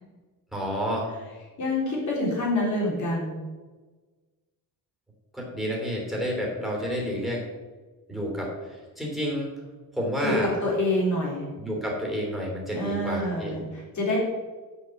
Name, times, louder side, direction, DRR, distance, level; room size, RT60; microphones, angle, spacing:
voice 1, 0.5-1.1 5.3-7.4 8.1-8.5 9.0-9.5 9.9-10.5 11.6-13.5, equal, ahead, -2 dB, 3.1 m, -29 dB
voice 2, 1.6-3.3 10.2-10.3 10.6-11.5 12.7-14.2, left 1 dB, 50° left, -4 dB, 3.6 m, -27 dB
7.3 x 7.0 x 7.5 m, 1.3 s
wide cardioid pair, 175°, 37 cm